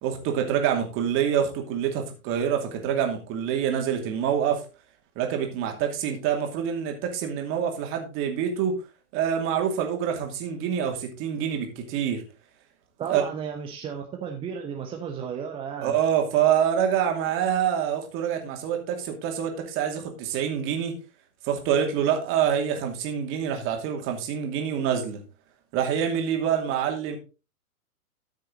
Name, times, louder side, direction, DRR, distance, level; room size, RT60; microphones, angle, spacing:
voice 1, 0.0-4.6 5.2-8.8 9.1-12.2 13.1-13.2 15.8-20.9 21.4-25.2 25.7-27.2, right 8 dB, 30° right, 3 dB, 2.6 m, -26 dB
voice 2, 13.0-16.0, right 7 dB, 10° right, 2 dB, 0.8 m, -34 dB
13.0 x 6.4 x 3.9 m, 0.31 s
figure-of-eight pair, 115°, 45 cm